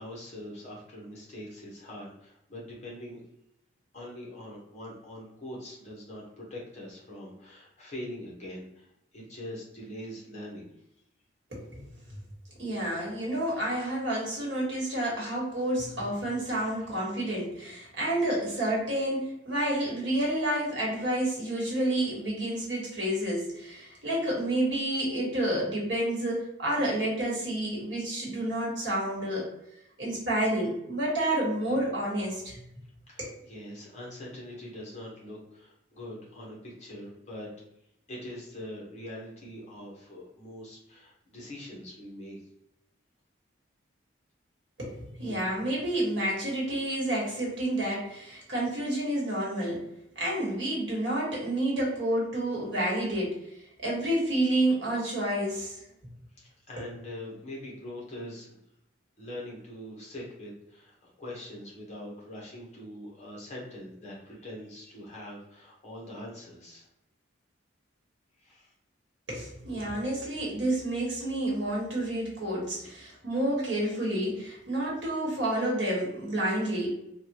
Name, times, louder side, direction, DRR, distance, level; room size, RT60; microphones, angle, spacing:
voice 1, 0.0-3.2 3.9-10.7 16.6-16.7 33.1-37.5 38.1-42.4 56.4-58.6 59.2-66.9 68.4-68.7, left 1 dB, 35° left, -4 dB, 1.0 m, -43 dB
voice 2, 11.5-11.9 12.6-29.5 30.0-32.6 33.2-33.3 44.8-49.8 50.1-53.4 53.8-55.8 69.3-76.9, right 1 dB, 65° right, -4 dB, 1.3 m, -29 dB
3.4 x 2.3 x 2.9 m, 0.81 s
head